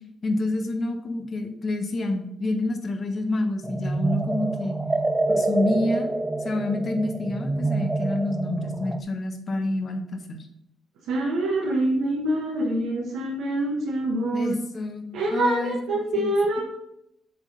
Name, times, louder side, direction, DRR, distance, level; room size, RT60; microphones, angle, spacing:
voice 1, 0.2-4.8 5.3-6.1 6.4-10.4 14.3-15.8 16.1-16.3, left 2 dB, 45° left, 5 dB, 1.2 m, -28 dB
sound 1, 3.6-9.0, right 2 dB, 15° right, 0.4 m, -27 dB
voice 2, 11.1-14.6 15.1-16.6, right 1 dB, 85° right, -4 dB, 1.5 m, -25 dB
7.0 x 3.8 x 5.1 m, 0.77 s
cardioid pair, 90°, 0 cm